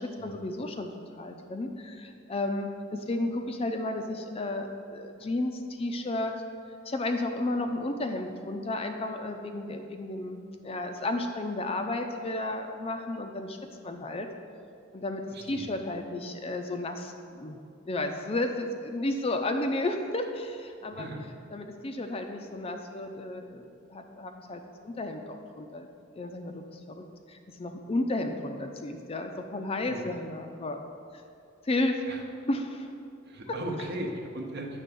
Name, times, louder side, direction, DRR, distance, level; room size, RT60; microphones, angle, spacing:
voice 1, 0.0-6.3 6.9-13.6 13.8-14.3 14.9-17.6 17.9-21.1 21.5-25.9 26.2-30.8 31.6-32.0 32.5-32.9 33.8-33.9, left 2 dB, 30° left, 5 dB, 0.5 m, -33 dB
voice 2, 15.3-15.7 20.8-21.2 29.9-30.1 32.1-32.2 33.3-34.8, right 1 dB, 55° right, 2 dB, 0.9 m, -37 dB
9.2 x 3.5 x 6.8 m, 2.4 s
head